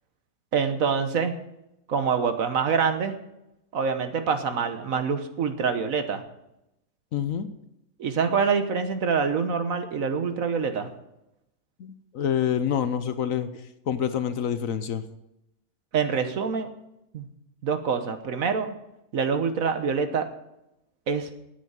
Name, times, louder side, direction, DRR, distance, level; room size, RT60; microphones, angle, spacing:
voice 1, 0.5-1.3 1.9-3.2 3.7-6.2 8.0-10.9 15.9-16.7 17.1-17.3 17.6-18.7 19.1-20.3 21.1-21.3, right 6 dB, 60° right, 9 dB, 1.4 m, -25 dB
voice 2, 7.1-7.5 11.8-13.5 13.9-15.0, left 9 dB, 60° left, 11 dB, 1.1 m, -27 dB
9.8 x 8.3 x 8.8 m, 0.86 s
omnidirectional pair, 1.7 m